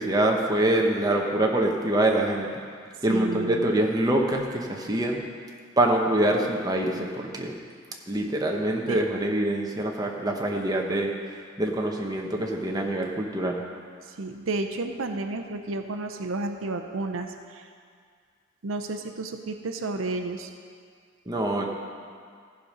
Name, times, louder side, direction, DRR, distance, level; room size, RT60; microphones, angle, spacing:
voice 1, 0.0-2.5 3.0-5.2 5.8-7.5 8.1-11.1 11.6-13.6 21.3-21.7, right 1 dB, 20° right, 0 dB, 1.0 m, -25 dB
voice 2, 3.1-3.8 8.9-9.0 14.2-17.7 18.6-20.5, right 2 dB, 80° right, 6 dB, 0.6 m, -31 dB
14.5 x 5.2 x 5.5 m, 2.1 s
head